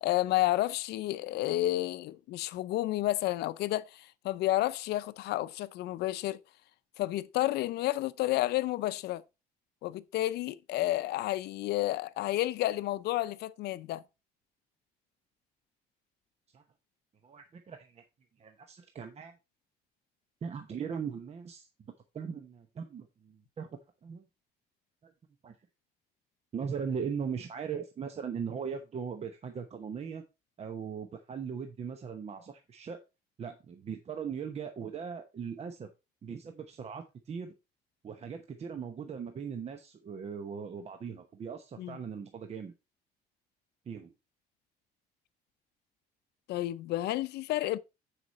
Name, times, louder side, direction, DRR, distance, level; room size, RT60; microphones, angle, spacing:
voice 1, 0.0-6.4 7.0-9.2 9.8-14.0 41.8-42.0 46.5-47.8, left 15 dB, 75° left, 0.5 m, -31 dB
voice 2, 17.2-18.0 18.4-19.4 20.4-23.7 24.0-24.3 25.0-25.1 25.4-25.5 26.5-30.2 30.6-33.0 33.4-35.9 36.2-37.5 38.0-42.7 43.9-44.1, right 6 dB, 40° right, 0.9 m, -39 dB
9.5 x 4.9 x 4.1 m
cardioid pair, 110°, 17 cm